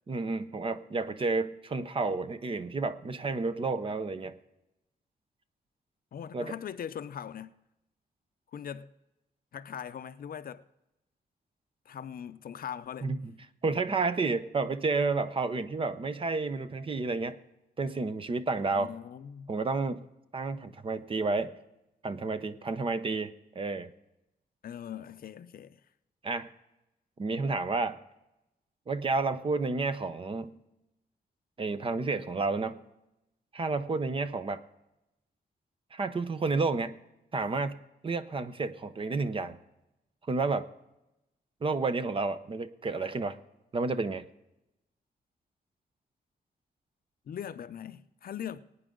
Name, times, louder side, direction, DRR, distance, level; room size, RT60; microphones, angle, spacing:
voice 1, 0.1-4.4 6.3-6.5 13.0-13.3 13.6-17.4 17.8-18.9 19.5-20.0 20.3-21.5 22.0-23.9 26.2-26.5 27.2-28.0 28.9-30.6 31.6-32.8 33.5-34.6 35.9-37.0 37.3-37.8 38.0-39.6 40.3-40.7 41.6-43.4 43.7-44.2, right 3 dB, 30° right, 0.7 m, -31 dB
voice 2, 6.1-7.6 8.5-8.9 9.5-10.6 11.9-13.1 18.7-19.5 24.6-25.8 47.3-48.6, left 9 dB, 60° left, 0.6 m, -40 dB
21.0 x 9.5 x 3.7 m
wide cardioid pair, 170°, 17 cm